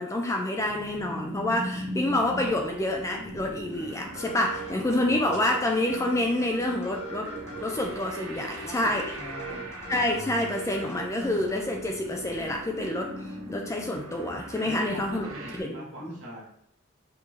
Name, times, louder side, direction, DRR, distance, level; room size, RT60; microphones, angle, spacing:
voice 1, 0.0-7.3 7.6-9.0 9.9-15.3 15.5-16.2, left 1 dB, 15° left, 2 dB, 0.3 m, -28 dB
sound 1, 0.6-15.6, equal, 75° right, 0.9 m, -40 dB
sound 2, 4.1-11.1, right 2 dB, 30° left, 1.1 m, -41 dB
voice 2, 8.4-9.7 14.6-16.4, right 1 dB, 55° right, -4 dB, 1.4 m, -42 dB
5.5 x 2.6 x 3.1 m, 0.69 s
head